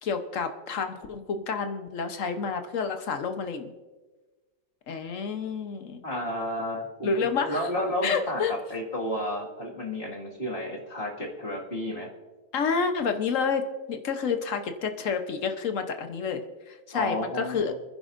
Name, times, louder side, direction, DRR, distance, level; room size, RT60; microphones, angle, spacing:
voice 1, 0.0-3.7 4.9-6.0 7.0-7.6 8.0-8.5 12.5-17.7, left 5 dB, 55° left, 7 dB, 1.2 m, -29 dB
voice 2, 6.0-7.1 7.4-12.1 16.9-17.8, left 1 dB, 35° left, -2 dB, 2.2 m, -32 dB
27.0 x 10.0 x 2.6 m, 1.3 s
omnidirectional pair, 1.7 m